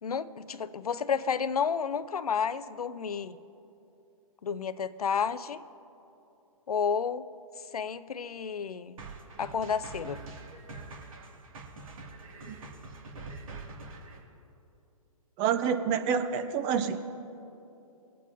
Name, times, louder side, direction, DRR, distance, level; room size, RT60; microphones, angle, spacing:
voice 1, 0.0-3.4 4.4-5.6 6.7-7.2 7.7-9.0 9.4-10.2, left 6 dB, 80° left, 14 dB, 0.5 m, -31 dB
sound 1, 9.0-14.2, right 3 dB, 65° right, 2.1 m, -44 dB
voice 2, 15.4-17.0, right 7 dB, 25° right, 9 dB, 0.5 m, -28 dB
23.5 x 8.4 x 2.6 m, 2.8 s
hypercardioid pair, 130°, 19 cm